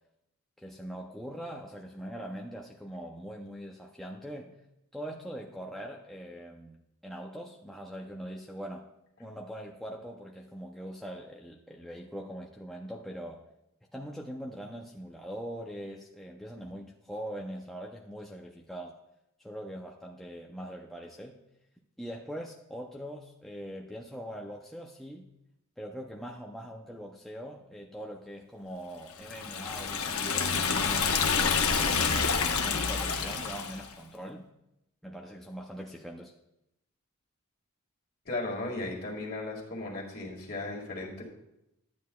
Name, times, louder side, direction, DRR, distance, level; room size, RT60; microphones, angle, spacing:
voice 1, 0.6-4.6 4.9-8.9 9.2-13.5 13.9-19.0 19.4-21.4 22.0-25.3 25.8-31.2 31.8-34.5 35.0-36.3, equal, ahead, -1 dB, 0.5 m, -42 dB
Liquid, 29.2-33.9, left 5 dB, 85° left, 1.0 m, -28 dB
voice 2, 38.3-41.3, left 2 dB, 45° left, -1 dB, 2.0 m, -36 dB
12.0 x 9.4 x 2.3 m, 0.84 s
head